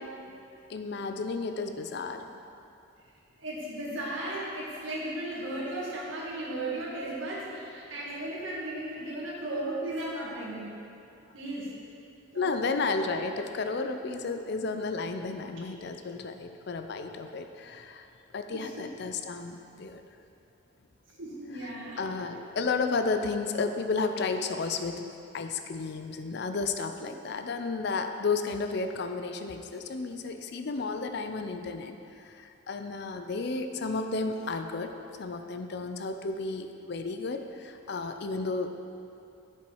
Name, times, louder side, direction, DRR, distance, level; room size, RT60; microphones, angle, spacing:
voice 1, 0.7-2.4 12.3-18.1 18.3-20.0 21.6-21.7 22.0-34.9 35.2-38.8, left 4 dB, 55° left, 7 dB, 0.5 m, -32 dB
voice 2, 3.4-10.7 11.3-11.7 12.3-12.6 18.5-18.7 21.2-22.0, right 1 dB, 70° right, -5 dB, 2.0 m, -35 dB
7.7 x 7.0 x 4.7 m, 2.7 s
head